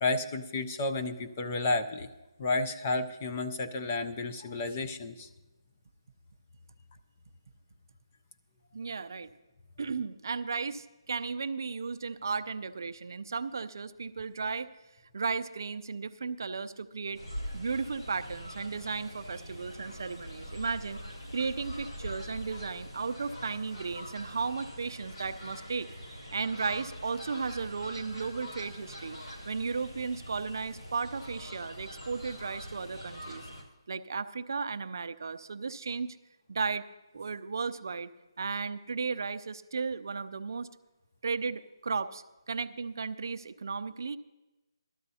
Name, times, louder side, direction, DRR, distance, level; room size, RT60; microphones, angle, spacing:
voice 1, 0.0-2.1 2.4-5.3, left 2 dB, 20° left, 7 dB, 0.4 m, -31 dB
voice 2, 8.7-9.3 9.8-14.7 15.1-17.2 17.5-21.0 21.3-25.9 26.3-29.2 29.5-33.5 33.9-36.2 36.5-36.8 37.1-38.1 38.4-40.7 41.2-44.2, right 5 dB, 45° right, 11 dB, 0.5 m, -35 dB
Fowl, 17.1-33.6, equal, 85° left, 5.5 m, -43 dB
18.0 x 12.5 x 2.7 m, 1.1 s
hypercardioid pair, 175°, 3 cm